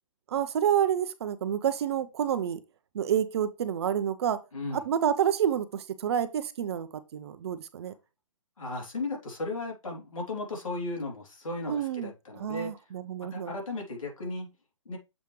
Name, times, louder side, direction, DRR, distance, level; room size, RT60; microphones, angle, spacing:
voice 1, 0.3-2.6 2.9-4.4 4.7-7.9 11.7-12.1 12.4-13.5, right 9 dB, 50° right, 0.8 m, -28 dB
voice 2, 4.5-4.8 8.6-12.9 13.3-14.5 14.8-15.0, left 2 dB, 75° left, 3.3 m, -36 dB
7.3 x 5.0 x 3.2 m
hypercardioid pair, 135°, 17 cm